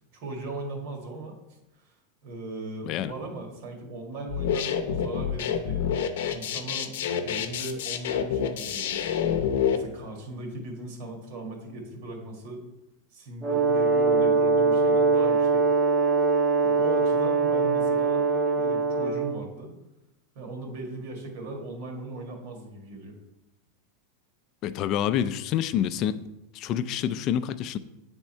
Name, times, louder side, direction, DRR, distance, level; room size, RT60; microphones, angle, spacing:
voice 1, 0.1-1.4 1.8-1.9 2.2-5.9 6.3-6.9 7.2-9.0 9.7-12.6 13.1-15.6 16.6-18.3 18.5-19.7 20.3-23.2, right 2 dB, 60° right, 2 dB, 1.7 m, -38 dB
sound 1, 4.3-9.8, left 8 dB, 80° left, 0.6 m, -27 dB
Brass instrument, 13.4-19.4, right 4 dB, 15° right, 0.6 m, -22 dB
voice 2, 24.6-26.2 26.5-27.8, left 10 dB, 40° left, 13 dB, 0.4 m, -27 dB
8.3 x 3.6 x 4.3 m, 0.95 s
supercardioid pair, 145°, 0 cm